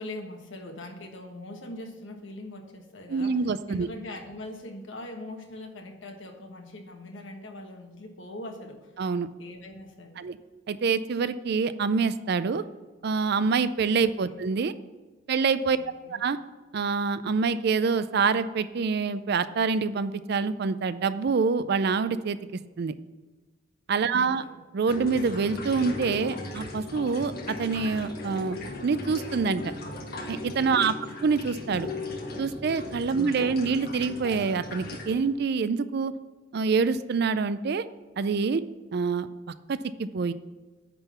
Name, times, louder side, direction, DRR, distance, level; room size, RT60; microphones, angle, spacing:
voice 1, 0.0-8.9 9.4-10.3 13.9-14.4 15.7-16.3 24.1-24.6 30.8-31.3 33.2-33.8, left 1 dB, 75° left, 3 dB, 1.4 m, -42 dB
voice 2, 3.1-3.9 9.0-9.3 10.2-10.4 10.7-12.6 13.0-14.7 15.3-15.8 16.2-16.4 16.7-22.4 22.8-22.9 23.9-24.4 24.7-29.6 30.3-30.9 31.2-31.9 32.4-36.1 36.5-37.8 38.2-38.6 38.9-39.3 39.7-40.3, right 5 dB, 55° right, 14 dB, 0.4 m, -26 dB
sound 1, 24.9-35.3, left 2 dB, 50° left, 1.3 m, -37 dB
9.7 x 3.9 x 7.0 m, 1.3 s
head